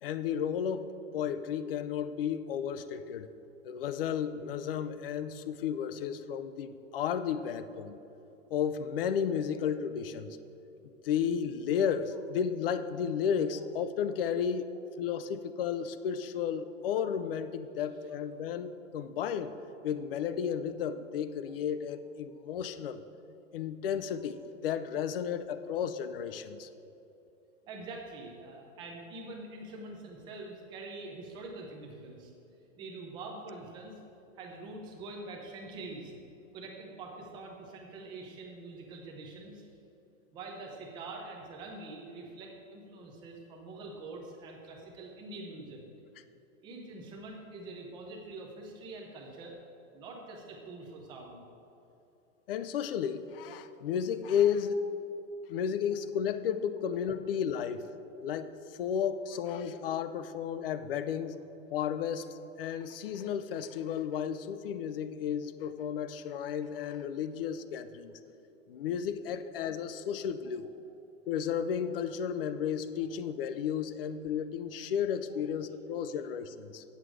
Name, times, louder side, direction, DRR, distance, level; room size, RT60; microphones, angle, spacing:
voice 1, 0.0-3.3 3.6-8.0 8.5-10.4 11.0-14.7 15.0-19.5 19.8-23.0 23.5-26.7 52.5-54.9 55.5-57.9 58.2-61.4 61.7-68.1 68.7-70.7 71.3-76.8, left 8 dB, 45° left, 12 dB, 0.5 m, -33 dB
voice 2, 27.7-32.3 32.8-34.0 34.4-36.1 36.5-39.7 40.3-45.8 46.6-49.5 49.9-51.4 54.6-54.8, right 2 dB, 10° right, 1 dB, 0.6 m, -45 dB
8.8 x 8.1 x 4.8 m, 2.9 s
supercardioid pair, 170°, 39 cm